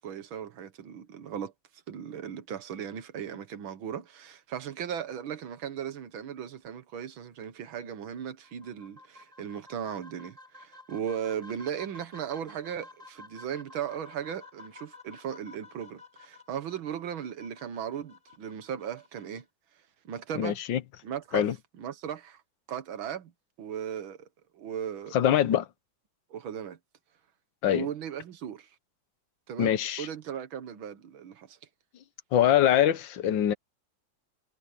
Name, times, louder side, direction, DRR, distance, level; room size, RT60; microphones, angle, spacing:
voice 1, 0.0-1.5 1.9-19.5 20.0-20.6 21.0-21.5 21.8-22.4 22.7-23.3 23.6-24.3 24.5-25.2 26.3-26.8 27.7-28.7 29.5-31.6, right 8 dB, 85° right, 2.1 m, -37 dB
sound 1, 8.4-19.4, left 2 dB, 15° right, 2.8 m, -52 dB
voice 2, 20.4-20.8 21.3-21.5 25.1-25.7 27.6-27.9 29.6-30.1 32.3-33.5, left 10 dB, 70° left, 1.6 m, -23 dB
omnidirectional pair, 2.1 m